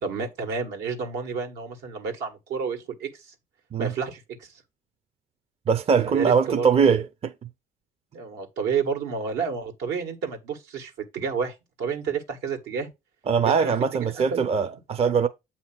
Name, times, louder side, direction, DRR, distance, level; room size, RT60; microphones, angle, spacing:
voice 1, 0.0-3.3 3.8-4.5 6.1-6.7 8.1-12.9 13.4-13.7 14.0-14.5, right 6 dB, 85° right, 1.6 m, -30 dB
voice 2, 5.7-7.3 13.3-15.3, right 6 dB, 35° right, 0.6 m, -22 dB
7.9 x 2.8 x 5.9 m
cardioid pair, 110°, 17 cm